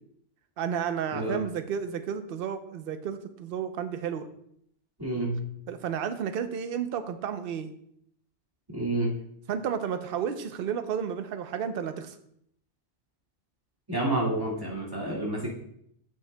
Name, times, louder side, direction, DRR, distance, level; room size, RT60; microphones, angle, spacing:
voice 1, 0.6-4.3 5.7-7.7 9.5-12.2, right 8 dB, 60° right, 9 dB, 0.7 m, -32 dB
voice 2, 5.0-5.4 8.7-9.1 13.9-15.5, right 1 dB, 20° right, -4 dB, 1.9 m, -29 dB
9.4 x 7.5 x 2.2 m, 0.71 s
omnidirectional pair, 1.2 m